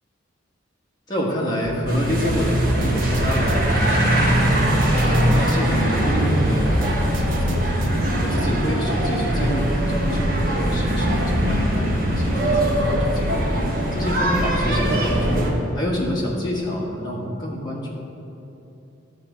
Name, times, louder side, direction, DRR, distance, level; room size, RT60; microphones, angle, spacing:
voice 1, 1.1-4.9 5.3-7.7 8.2-13.5 13.9-15.4 15.7-17.9, equal, 20° left, -4 dB, 1.4 m, -28 dB
sound 1, 1.6-1.8 2.6-3.8 4.6-5.8 6.6-8.1 8.6-8.8, right 2 dB, 70° right, 0.6 m, -34 dB
sound 2, 1.9-15.5, right 1 dB, 45° right, 1.4 m, -21 dB
11.5 x 4.1 x 7.3 m, 3.0 s
head